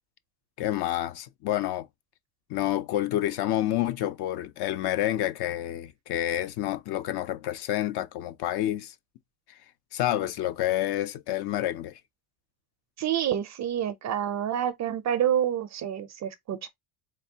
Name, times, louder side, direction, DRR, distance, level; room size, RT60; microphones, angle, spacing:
voice 1, 0.6-1.9 2.5-8.9 9.9-11.9, left 13 dB, 55° left, 0.5 m, -28 dB
voice 2, 13.0-16.7, right 10 dB, 35° right, 0.4 m, -28 dB
4.1 x 3.2 x 2.6 m
cardioid pair, 155°, 50 cm